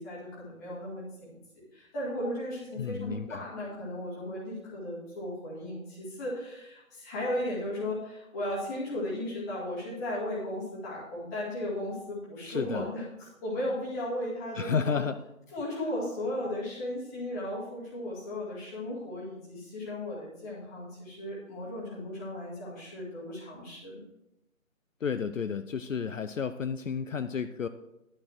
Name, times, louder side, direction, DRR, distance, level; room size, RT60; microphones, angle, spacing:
voice 1, 0.0-15.0 15.5-24.0, left 1 dB, 10° left, -8 dB, 2.1 m, -36 dB
voice 2, 2.8-3.4 12.5-12.9 14.6-15.2 25.0-27.7, left 6 dB, 65° left, 10 dB, 0.6 m, -31 dB
11.0 x 6.5 x 4.4 m, 0.88 s
figure-of-eight pair, 160°, 42 cm